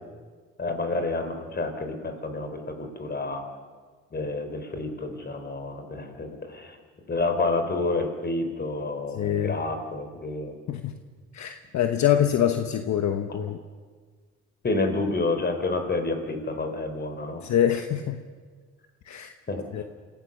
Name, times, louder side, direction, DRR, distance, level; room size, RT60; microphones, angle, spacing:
voice 1, 0.6-3.4 4.1-6.8 7.1-10.5 14.6-17.4 19.5-19.8, left 2 dB, 35° left, 7 dB, 3.8 m, -29 dB
voice 2, 9.1-9.6 10.7-10.9 11.3-13.6 17.4-18.2 19.1-19.3 19.7-19.8, left 10 dB, 65° left, 7 dB, 1.2 m, -25 dB
27.0 x 16.5 x 6.8 m, 1.5 s
cardioid pair, 90°, 30 cm